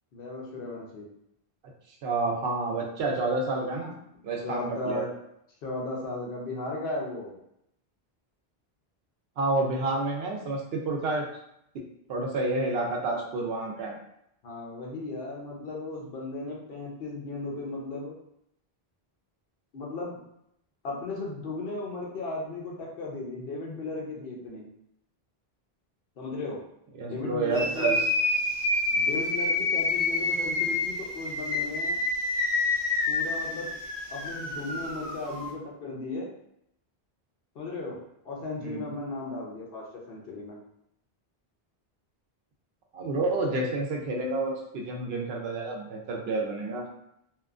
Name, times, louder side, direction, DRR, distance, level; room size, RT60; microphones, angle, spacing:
voice 1, 0.1-1.1 4.4-5.1 5.6-7.3 14.4-18.1 19.7-20.2 20.8-24.7 26.2-26.6 27.0-28.0 28.9-32.0 33.1-33.7 34.1-36.3 37.5-38.0 38.2-40.6, left 2 dB, 65° left, -2 dB, 0.9 m, -36 dB
voice 2, 2.0-4.0 4.2-5.1 9.4-11.2 12.1-14.0 27.0-28.0 38.6-38.9 42.9-46.8, right 3 dB, 75° right, 0 dB, 0.8 m, -29 dB
sound 1, 27.5-35.5, left 3 dB, 25° left, 0.6 m, -28 dB
2.8 x 2.2 x 2.4 m, 0.77 s
omnidirectional pair, 1.0 m